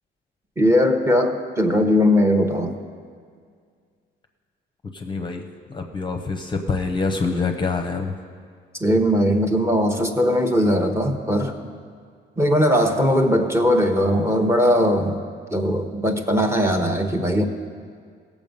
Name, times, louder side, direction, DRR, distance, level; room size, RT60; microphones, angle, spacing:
voice 1, 0.6-2.7 8.8-11.5 12.4-15.2 15.5-17.5, equal, 15° right, 5 dB, 0.9 m, -19 dB
voice 2, 4.9-8.1, left 4 dB, 25° left, 5 dB, 0.7 m, -26 dB
16.5 x 7.1 x 5.3 m, 2.1 s
cardioid pair, 120°, 19 cm